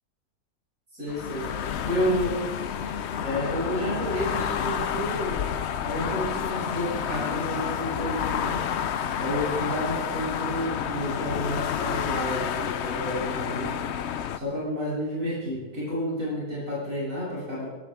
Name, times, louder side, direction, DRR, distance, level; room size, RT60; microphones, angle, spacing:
voice 1, 0.9-1.5 1.8-2.3 3.2-5.5 5.8-8.6 9.2-13.8 14.3-17.7, equal, 55° right, -8 dB, 7.3 m, -30 dB
sound 1, 1.1-14.4, left 8 dB, 60° left, 0.7 m, -30 dB
24.0 x 11.5 x 3.7 m, 1.2 s
omnidirectional pair, 1.8 m